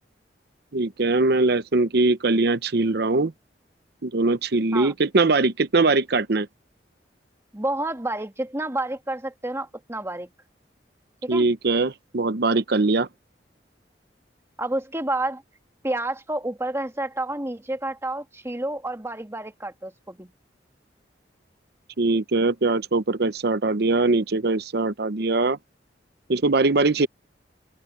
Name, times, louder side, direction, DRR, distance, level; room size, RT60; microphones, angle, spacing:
voice 1, 0.7-3.3 4.0-6.5 11.3-13.1 22.0-25.6 26.3-27.1, right 3 dB, 60° right, 0.8 m, -21 dB
voice 2, 7.5-10.3 11.2-11.5 14.6-15.4 15.8-20.3, right 1 dB, 15° right, 2.1 m, -29 dB
open air
head